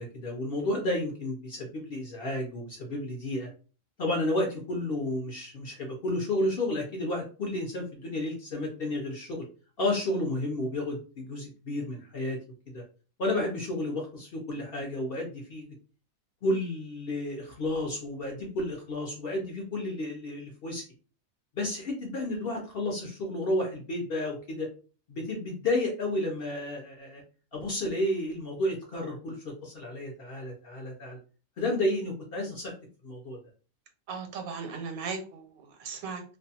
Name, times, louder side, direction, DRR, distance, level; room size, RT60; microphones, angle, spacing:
voice 1, 0.0-3.5 4.0-9.4 9.8-12.4 12.7-12.8 13.2-15.6 16.4-20.8 21.6-24.7 25.1-27.2 27.5-31.2 31.6-32.7 33.0-33.4, left 1 dB, 60° left, 0 dB, 0.6 m, -31 dB
voice 2, 34.1-36.2, right 5 dB, 85° right, 5 dB, 1.1 m, -37 dB
2.5 x 2.2 x 2.7 m, 0.38 s
omnidirectional pair, 1.5 m